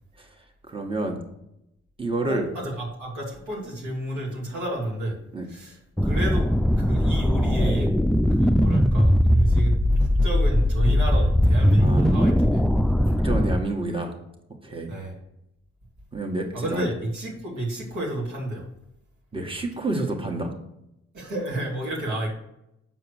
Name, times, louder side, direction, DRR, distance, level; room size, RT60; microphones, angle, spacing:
voice 1, 0.6-1.2 2.0-2.5 5.3-5.5 11.8-12.1 13.2-14.1 14.6-14.9 16.1-16.9 19.3-20.5, right 2 dB, 20° right, 2 dB, 1.5 m, -29 dB
voice 2, 2.3-5.2 5.5-5.8 6.0-6.5 6.8-7.9 8.4-12.6 14.9-15.1 16.5-18.7 21.1-22.3, right 1 dB, 85° right, -3 dB, 2.7 m, -30 dB
sound 1, 6.0-13.6, equal, ahead, 0.4 m, -20 dB
7.4 x 4.7 x 6.4 m, 0.83 s
cardioid pair, 55°, 29 cm